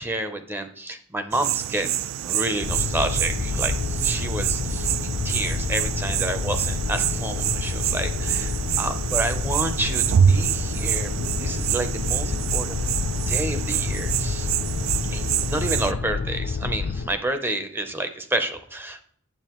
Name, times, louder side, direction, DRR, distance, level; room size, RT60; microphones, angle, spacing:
voice 1, 0.0-14.5 15.1-19.0, right 1 dB, 10° right, 8 dB, 0.6 m, -30 dB
sound 1, 1.3-15.9, right 9 dB, 70° right, 0.3 m, -26 dB
sound 2, 2.6-17.1, left 4 dB, 50° left, 0.3 m, -28 dB
9.1 x 7.2 x 3.0 m, 0.65 s
head